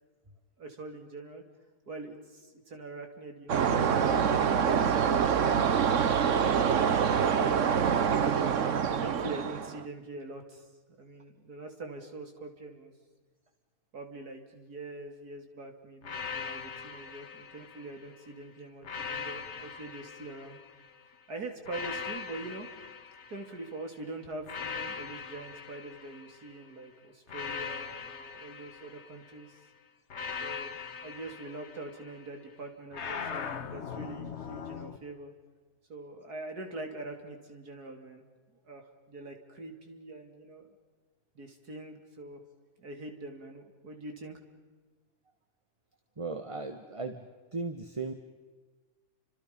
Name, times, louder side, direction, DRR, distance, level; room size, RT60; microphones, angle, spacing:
voice 1, 0.6-1.4 1.9-5.6 6.3-10.7 11.0-12.9 13.9-20.6 21.3-22.7 23.3-29.6 30.4-35.3 35.9-38.2 38.5-40.8 41.4-42.4 42.8-44.4, right 2 dB, 75° right, 4 dB, 3.6 m, -44 dB
sound 1, 3.5-9.8, right 7 dB, 55° right, 1.3 m, -26 dB
sound 2, 16.0-18.2 18.8-21.0 21.7-23.8 24.4-26.6 27.3-29.4 30.1-32.3 32.9-35.0, left 6 dB, 50° left, 1.3 m, -40 dB
voice 2, 46.2-47.3 47.5-48.1, right 3 dB, 20° right, 6 dB, 1.4 m, -36 dB
30.0 x 26.5 x 5.4 m, 1.4 s
omnidirectional pair, 1.7 m